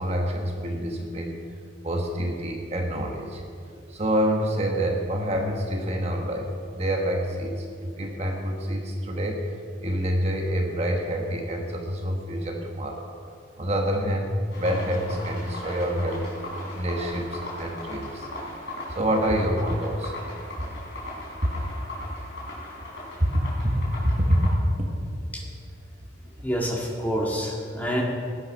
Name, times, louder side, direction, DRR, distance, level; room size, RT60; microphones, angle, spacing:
voice 1, 0.0-1.4 1.8-3.4 3.7-9.5 9.8-13.1 13.6-16.3 16.7-18.3 18.9-20.1 20.6-20.7 21.4-21.5 23.6-25.0, equal, 30° right, 1 dB, 1.3 m, -27 dB
sound 1, 14.5-24.5, left 1 dB, 60° left, 4.4 m, -38 dB
voice 2, 26.4-28.0, equal, 10° left, -2 dB, 1.8 m, -27 dB
18.5 x 9.6 x 5.5 m, 2.2 s
head